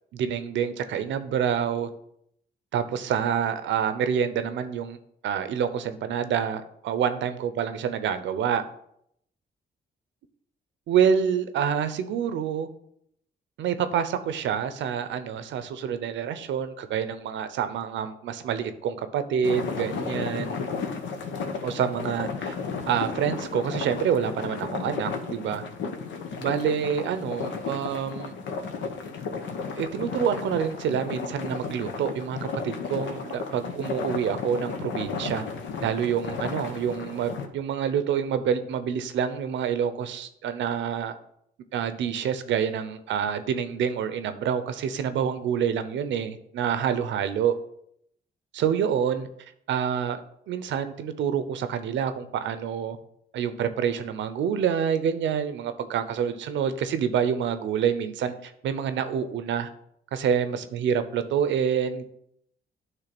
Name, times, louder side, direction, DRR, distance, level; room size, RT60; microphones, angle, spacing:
voice 1, 0.1-1.9 2.7-5.0 5.2-8.6 10.9-12.7 13.6-20.6 21.6-22.6 22.9-25.6 26.4-28.4 29.7-35.4 35.8-41.1 41.7-47.6 48.5-49.3 49.7-50.2 50.5-53.0 53.3-59.7 60.1-62.0, right 8 dB, 80° right, 11 dB, 0.7 m, -27 dB
sound 1, 19.4-37.5, left 5 dB, 80° left, 0.9 m, -34 dB
9.0 x 3.2 x 6.0 m, 0.72 s
cardioid pair, 75°, 19 cm